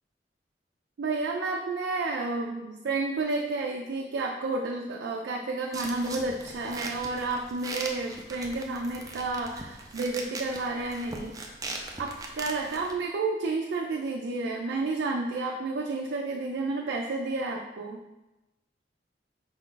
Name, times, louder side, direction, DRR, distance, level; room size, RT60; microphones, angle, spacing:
voice 1, 1.0-11.3 12.0-18.0, right 3 dB, 80° right, 0 dB, 0.4 m, -31 dB
sound 1, 5.7-12.9, right 2 dB, 20° right, 0.4 m, -40 dB
5.2 x 2.3 x 3.8 m, 1.0 s
head